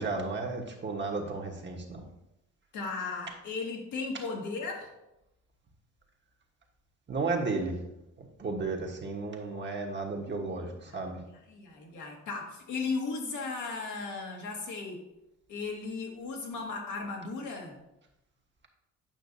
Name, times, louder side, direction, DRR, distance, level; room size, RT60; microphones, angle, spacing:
voice 1, 0.0-2.0 7.1-7.7 8.4-11.2, right 3 dB, 40° right, 1 dB, 1.3 m, -33 dB
voice 2, 2.7-4.9 10.2-10.3 10.8-11.0 11.5-15.0 15.5-17.8, left 4 dB, 80° left, 0 dB, 1.7 m, -36 dB
8.9 x 5.7 x 2.7 m, 0.89 s
cardioid pair, 90°, 30 cm